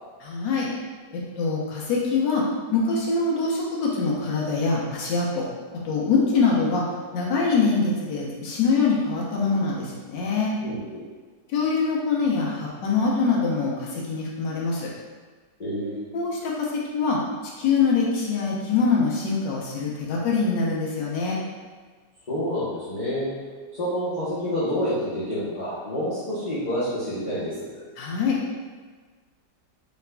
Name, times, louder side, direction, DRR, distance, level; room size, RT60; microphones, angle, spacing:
voice 1, 0.2-0.7 1.4-2.4 2.7-5.5 5.8-6.8 7.1-10.5 11.5-14.9 16.1-16.7 16.9-17.2 17.6-21.4 28.0-28.4, left 4 dB, 85° left, -3 dB, 1.5 m, -24 dB
voice 2, 10.6-11.0 15.6-16.0 22.3-23.3 23.8-27.7, equal, 35° left, -12 dB, 0.7 m, -28 dB
4.1 x 3.4 x 2.2 m, 1.5 s
omnidirectional pair, 1.9 m